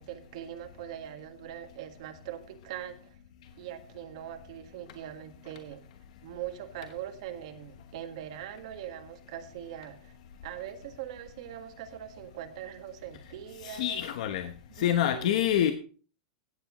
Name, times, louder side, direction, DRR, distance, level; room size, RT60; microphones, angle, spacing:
voice 1, 0.0-3.1 3.6-5.9 6.2-10.1 10.4-14.0 14.7-15.3, right 11 dB, 50° right, 1.6 m, -42 dB
voice 2, 13.6-14.5 14.8-15.7, left 11 dB, 55° left, 1.1 m, -26 dB
16.0 x 9.6 x 3.1 m
supercardioid pair, 175°, 4 cm